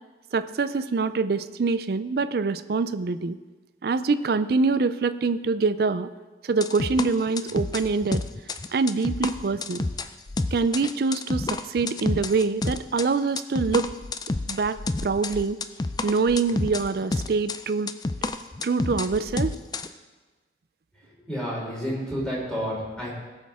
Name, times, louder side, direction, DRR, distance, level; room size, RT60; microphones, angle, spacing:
voice 1, 0.3-3.4 3.8-6.1 6.4-8.2 8.7-9.8 10.5-13.9 14.5-15.6 16.0-17.9 18.6-19.5, right 4 dB, 60° right, 12 dB, 0.4 m, -25 dB
sound 1, 6.6-13.1 13.4-19.9, left 2 dB, 20° left, 0.4 m, -29 dB
voice 2, 21.3-23.1, equal, 5° left, -6 dB, 3.4 m, -30 dB
19.0 x 6.4 x 3.6 m, 1.3 s
head